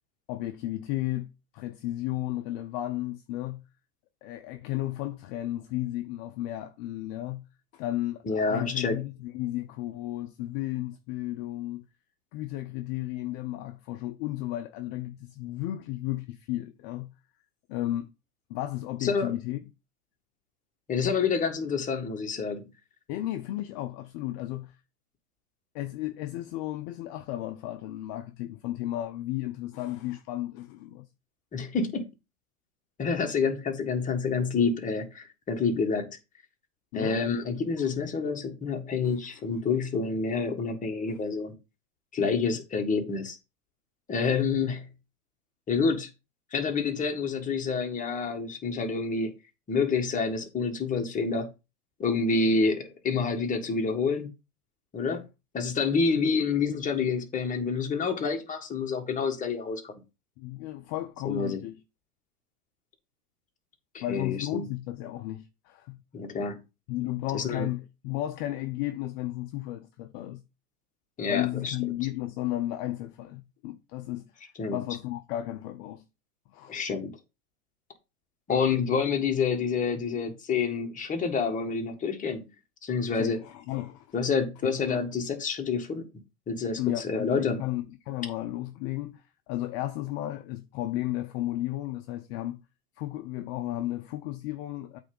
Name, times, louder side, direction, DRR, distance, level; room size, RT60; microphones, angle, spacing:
voice 1, 0.3-3.6 4.2-7.4 7.7-11.8 12.3-17.1 17.7-18.1 18.5-19.6 23.1-24.8 25.7-31.1 36.9-37.3 39.0-39.1 41.1-41.2 55.1-55.2 60.4-61.8 64.0-66.0 66.9-70.4 71.3-74.3 74.7-76.0 76.5-76.8 83.1-84.1 84.6-85.0 86.8-92.6 93.0-95.0, left 15 dB, 40° left, 0.8 m, -34 dB
voice 2, 8.2-9.0 19.0-19.3 20.9-22.7 31.5-32.0 33.0-36.2 36.9-41.5 42.1-43.4 44.1-44.8 45.7-46.1 46.5-49.3 49.7-51.5 52.0-54.3 54.9-55.2 55.5-60.0 61.2-61.6 63.9-64.7 66.1-66.6 67.3-67.7 71.2-71.7 74.6-74.8 76.7-77.1 78.5-82.4 82.8-83.4 84.1-86.0 86.5-87.6, left 5 dB, 15° left, 1.7 m, -28 dB
8.3 x 3.5 x 5.4 m
hypercardioid pair, 125°, 46 cm